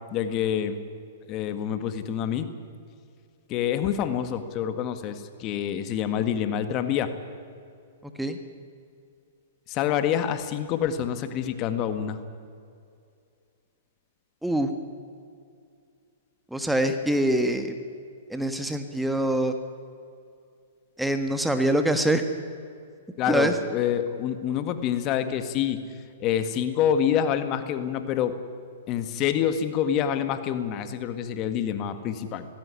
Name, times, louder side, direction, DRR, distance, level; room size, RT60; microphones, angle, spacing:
voice 1, 0.1-0.8 1.3-2.5 3.5-7.1 9.7-12.2 23.2-25.8 26.2-28.3 28.9-32.5, left 9 dB, 35° left, 10 dB, 1.7 m, -27 dB
voice 2, 8.0-8.4 14.4-14.7 16.5-17.7 18.3-19.5 21.0-22.2 23.3-23.6, right 1 dB, 5° right, 7 dB, 1.5 m, -24 dB
18.0 x 16.5 x 9.7 m, 2.4 s
hypercardioid pair, 125°, 0 cm